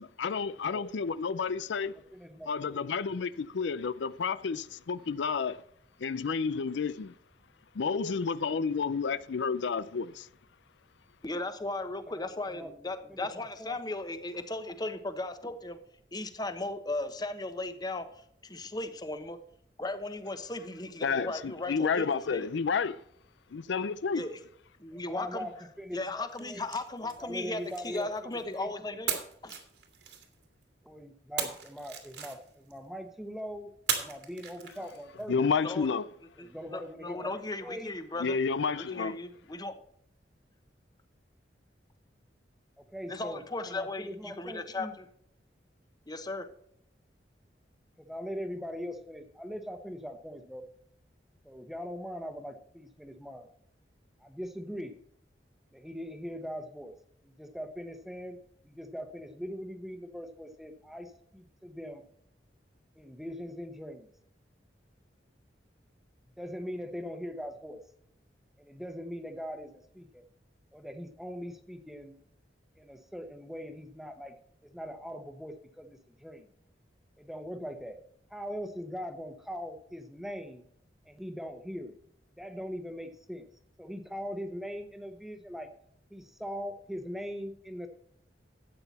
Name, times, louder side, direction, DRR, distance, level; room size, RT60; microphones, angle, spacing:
voice 1, 0.0-1.9 2.5-5.6 6.0-7.1 7.8-10.3 21.0-23.0 23.5-24.2 35.3-36.0 38.2-39.1, left 5 dB, 80° left, 0.5 m, -30 dB
voice 2, 1.9-2.8 12.1-12.7 13.1-13.8 24.9-26.6 27.2-29.0 30.8-35.5 36.4-37.9 42.8-44.9 48.0-50.6 51.4-53.5 54.2-55.0 55.7-56.9 57.2-58.4 58.6-62.0 63.0-64.1 66.4-67.8 68.6-70.2 70.7-72.2 72.8-74.3 74.6-76.5 77.2-78.0 78.3-80.6 81.1-82.0 82.4-83.5 83.8-85.7 86.1-87.9, equal, ahead, 1.0 m, -41 dB
voice 3, 11.2-15.8 16.1-18.1 18.4-19.4 19.8-22.5 24.1-24.4 24.8-25.5 25.9-29.5 35.6-35.9 36.4-38.4 38.8-39.8 43.1-45.1 46.1-46.5, left 2 dB, 25° left, 1.0 m, -36 dB
sound 1, 26.3-28.6 29.1-30.6 31.4-32.8 33.9-35.2, right 8 dB, 70° right, 2.3 m, -38 dB
12.5 x 8.8 x 4.1 m
head